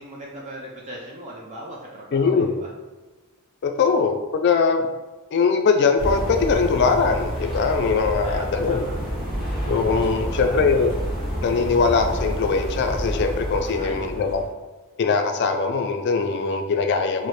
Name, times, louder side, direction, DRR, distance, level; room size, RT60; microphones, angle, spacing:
voice 1, 0.0-2.7 4.0-4.1 8.2-8.9 10.0-10.7 13.8-14.4, right 1 dB, 30° right, -3 dB, 0.4 m, -38 dB
voice 2, 2.1-2.6 3.6-4.9 5.3-8.9 9.7-10.9 11.4-14.4 15.0-17.3, left 5 dB, 50° left, 5 dB, 0.3 m, -21 dB
sound 1, 6.0-14.5, equal, ahead, 0.8 m, -29 dB
4.2 x 2.0 x 3.1 m, 1.2 s
head